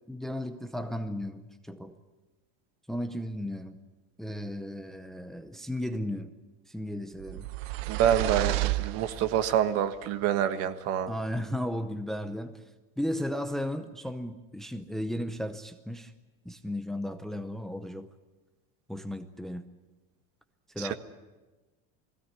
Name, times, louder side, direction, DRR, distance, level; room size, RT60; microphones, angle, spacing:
voice 1, 0.1-2.0 2.9-3.8 4.2-6.3 6.7-7.5 11.1-12.6 13.0-16.1 16.4-18.1 18.9-19.7 20.7-20.9, left 1 dB, ahead, 0.7 m, -35 dB
sound 1, 7.2-9.6, right 18 dB, 80° right, 0.9 m, -31 dB
voice 2, 7.9-11.1 20.8-20.9, right 10 dB, 50° right, 1.5 m, -27 dB
21.0 x 16.5 x 9.9 m
cardioid pair, 160°, 30 cm